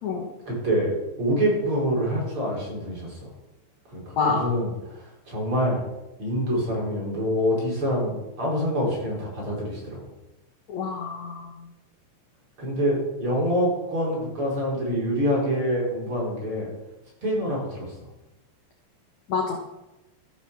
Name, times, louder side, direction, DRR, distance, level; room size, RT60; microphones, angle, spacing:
voice 1, 0.4-3.2 3.9-5.8 6.2-10.0 12.6-16.7 17.2-17.9, equal, 30° right, -4 dB, 5.2 m, -26 dB
voice 2, 10.7-11.5 19.3-19.8, left 4 dB, 65° left, 1 dB, 1.9 m, -27 dB
14.0 x 7.7 x 7.0 m, 0.97 s
omnidirectional pair, 5.1 m